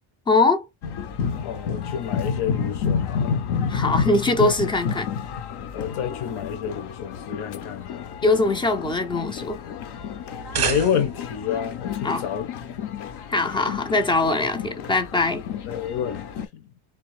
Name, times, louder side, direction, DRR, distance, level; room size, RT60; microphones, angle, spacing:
voice 1, 0.3-0.6 3.7-5.1 8.2-9.6 12.0-12.2 13.3-15.4, left 2 dB, 10° left, 0.3 m, -22 dB
sound 1, 0.8-16.5, left 6 dB, 55° left, 0.6 m, -30 dB
voice 2, 1.4-3.4 5.7-8.0 10.6-12.5 15.7-16.7, left 8 dB, 75° left, 1.2 m, -29 dB
sound 2, 10.2-11.4, right 7 dB, 30° right, 0.7 m, -28 dB
3.9 x 3.0 x 3.1 m
cardioid pair, 180°, 49 cm